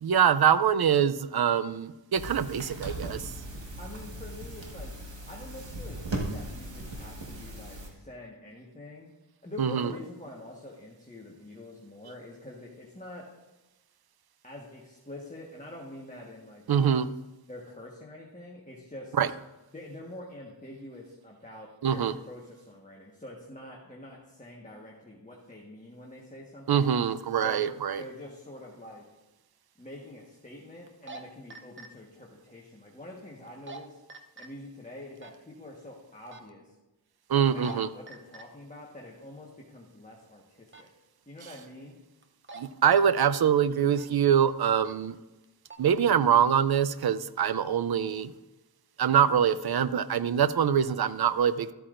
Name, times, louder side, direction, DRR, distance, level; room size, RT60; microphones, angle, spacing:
voice 1, 0.0-3.3 9.6-9.9 16.7-17.1 19.2-19.3 21.8-22.1 26.7-28.0 37.3-37.9 42.6-45.2 45.8-48.3 49.0-51.7, right 8 dB, 60° right, 14 dB, 0.5 m, -24 dB
sound 1, 2.1-7.9, right 1 dB, 85° right, 1.6 m, -38 dB
voice 2, 3.8-4.9 5.3-9.1 9.4-13.3 14.4-17.0 17.5-19.2 19.7-27.0 27.4-27.7 27.9-29.0 29.8-34.0 34.4-36.8 37.3-40.9 41.3-42.0, left 1 dB, 20° left, -2 dB, 1.4 m, -46 dB
sound 2, 28.8-28.9 30.9-31.2 31.5-31.9 33.5-33.8 34.1-34.5 35.2-35.3 36.3-36.5 37.4-37.8 38.1-38.4 40.7-40.9 42.2-42.6 42.9-43.3 43.9-44.2 44.8-45.0 45.4-45.8, right 3 dB, 30° right, 0.7 m, -44 dB
13.0 x 8.6 x 2.5 m, 1.1 s
wide cardioid pair, 65°, 43 cm